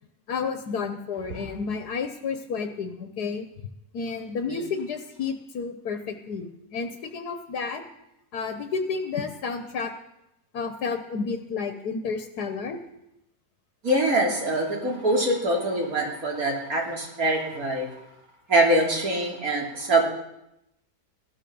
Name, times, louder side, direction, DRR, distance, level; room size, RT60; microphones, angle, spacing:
voice 1, 0.3-3.5 3.9-7.8 8.3-9.9 10.5-12.8, left 5 dB, 85° left, 7 dB, 1.6 m, -31 dB
voice 2, 13.8-17.9 18.5-20.1, right 1 dB, 65° right, 0 dB, 3.6 m, -24 dB
16.5 x 12.5 x 7.0 m, 0.85 s
omnidirectional pair, 1.6 m